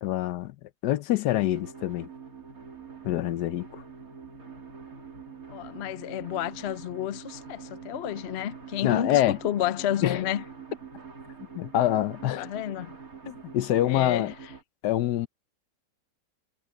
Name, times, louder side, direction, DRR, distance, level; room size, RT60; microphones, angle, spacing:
voice 1, 0.0-2.1 3.0-3.8 8.8-9.4 10.0-10.3 11.5-12.5 13.3-14.3 14.8-15.3, left 13 dB, 75° left, 1.2 m, -26 dB
sound 1, 1.3-14.6, right 5 dB, 55° right, 3.2 m, -45 dB
voice 2, 5.5-10.4 12.4-12.9 13.9-14.3, left 11 dB, 60° left, 0.7 m, -31 dB
omnidirectional pair, 1.8 m